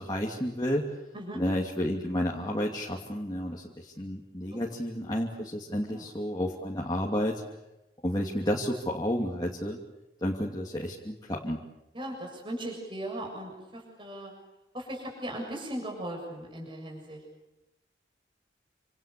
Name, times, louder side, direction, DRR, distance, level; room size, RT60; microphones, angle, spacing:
voice 1, 0.0-1.0 1.3-7.4 8.0-9.8 10.2-11.6, equal, 25° left, -2 dB, 2.8 m, -31 dB
voice 2, 11.9-14.3 14.7-17.2, right 1 dB, 30° right, 0 dB, 7.1 m, -38 dB
29.0 x 27.5 x 6.9 m, 0.95 s
head